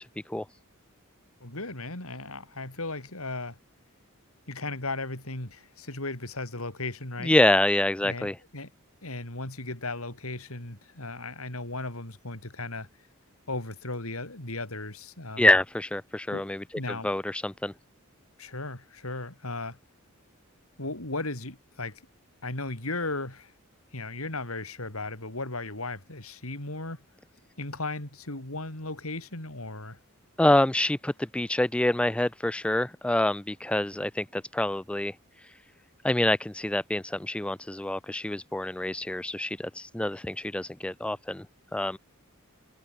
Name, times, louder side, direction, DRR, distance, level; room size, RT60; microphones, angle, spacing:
voice 1, 1.4-3.6 4.5-7.4 8.0-8.7 9.0-12.9 13.5-15.5 16.3-17.1 18.4-19.8 20.8-22.0 22.4-23.5 23.9-27.0 27.6-30.0, left 2 dB, 80° left, 5.3 m, -36 dB
voice 2, 7.2-8.4 15.4-16.6 17.0-17.7 30.4-35.1 36.0-41.5 41.7-42.0, left 1 dB, 5° left, 0.3 m, -26 dB
head